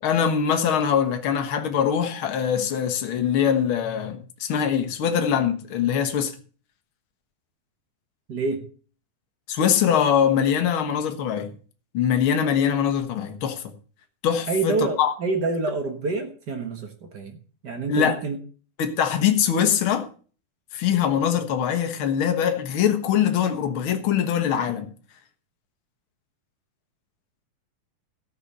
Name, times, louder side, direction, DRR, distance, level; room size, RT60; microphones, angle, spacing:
voice 1, 0.0-6.3 9.5-11.5 11.9-13.7 14.2-15.1 17.9-18.2 18.8-20.1 20.7-24.9, left 8 dB, 65° left, 1.3 m, -23 dB
voice 2, 8.3-8.7 14.5-17.4 17.6-18.4, right 3 dB, 60° right, 1.0 m, -27 dB
14.0 x 6.7 x 6.7 m
omnidirectional pair, 4.1 m